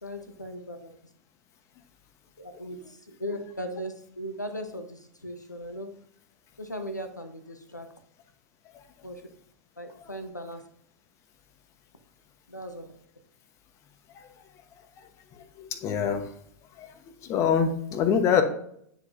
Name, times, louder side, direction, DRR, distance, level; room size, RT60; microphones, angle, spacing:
voice 1, 0.0-1.0 2.4-5.9 6.6-7.9 9.0-9.2 9.8-10.6 12.5-12.9, equal, 90° left, 7 dB, 0.9 m, -38 dB
voice 2, 15.6-16.3 16.8-16.9 17.2-18.4, left 7 dB, 35° left, 8 dB, 1.0 m, -24 dB
9.4 x 4.9 x 2.6 m, 0.69 s
figure-of-eight pair, 95°, 9 cm